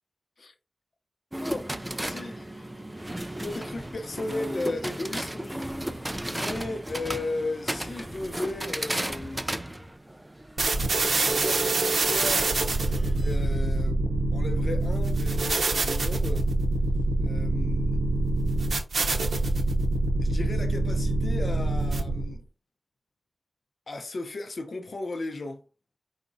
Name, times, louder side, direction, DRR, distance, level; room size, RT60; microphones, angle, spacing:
sound 1, 1.3-13.6, right 1 dB, 15° right, 0.4 m, -35 dB
voice 1, 2.0-2.8 3.4-9.4 11.2-14.0 14.3-16.5 17.2-18.0 20.2-22.4 23.9-25.6, left 2 dB, 70° left, 0.6 m, -36 dB
sound 2, 10.6-22.4, right 2 dB, 90° right, 0.7 m, -25 dB
4.9 x 4.0 x 2.6 m
wide cardioid pair, 100°, 0 cm